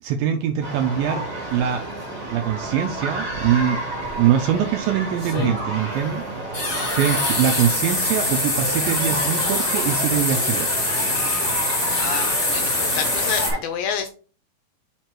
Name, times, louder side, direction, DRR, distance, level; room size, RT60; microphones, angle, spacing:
voice 1, 0.0-1.8 2.3-3.8 4.2-6.3 6.9-10.8, right 9 dB, 85° right, 6 dB, 2.0 m, -23 dB
sound 1, 0.6-13.6, right 1 dB, 35° right, 3.5 m, -30 dB
sound 2, 4.0-4.1 5.2-5.6 6.5-13.5, left 2 dB, 25° left, 1.8 m, -24 dB
voice 2, 12.0-14.1, left 8 dB, 80° left, 7 dB, 2.1 m, -29 dB
5.7 x 4.4 x 4.5 m, 0.40 s
omnidirectional pair, 4.6 m